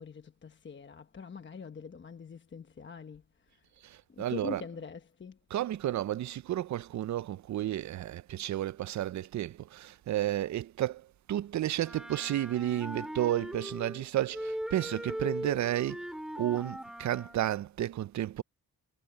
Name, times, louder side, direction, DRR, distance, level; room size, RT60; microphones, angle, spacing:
voice 1, 0.0-3.2 3.5-3.6 4.1-5.4, left 5 dB, 30° left, 1.0 m, -44 dB
voice 2, 3.8-4.6 5.5-16.1 16.4-18.4, right 13 dB, 50° right, 0.4 m, -32 dB
Wind instrument woodwind instrument, 11.8-14.0 14.3-17.4, equal, ahead, 2.4 m, -39 dB
wide cardioid pair, 140°, 38 cm